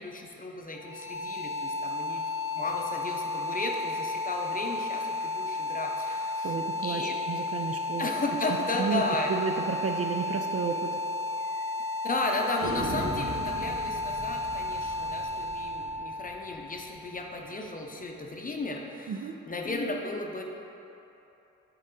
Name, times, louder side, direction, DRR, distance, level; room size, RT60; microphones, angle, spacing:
voice 1, 0.0-2.3 2.5-6.6 6.8-7.2 8.0-9.5 12.0-20.4, left 2 dB, 25° left, 1 dB, 0.7 m, -34 dB
sound 1, 0.7-17.7, left 2 dB, 10° right, 0.7 m, -33 dB
voice 2, 6.4-8.1 8.8-9.0 9.3-10.9 19.1-19.4, right 6 dB, 45° right, 4 dB, 0.4 m, -32 dB
sound 2, 9.8-9.9 10.3-10.4 10.6-10.7 11.4-11.9 12.6-17.4, right 2 dB, 75° right, 1.2 m, -40 dB
6.7 x 3.8 x 3.7 m, 2.9 s
cardioid pair, 65°, 33 cm